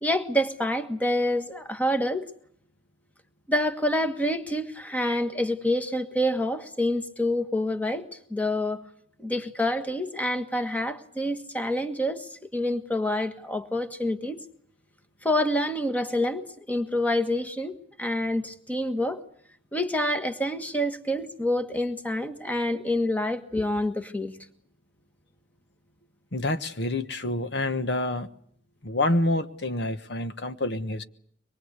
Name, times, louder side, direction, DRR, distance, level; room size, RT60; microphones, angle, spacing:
voice 1, 0.0-2.3 3.5-8.9 9.2-14.4 15.2-19.2 19.7-24.3, left 1 dB, 10° left, 1.6 m, -27 dB
voice 2, 26.3-28.3 28.8-31.0, left 2 dB, 60° left, 1.3 m, -27 dB
24.5 x 22.0 x 8.2 m
head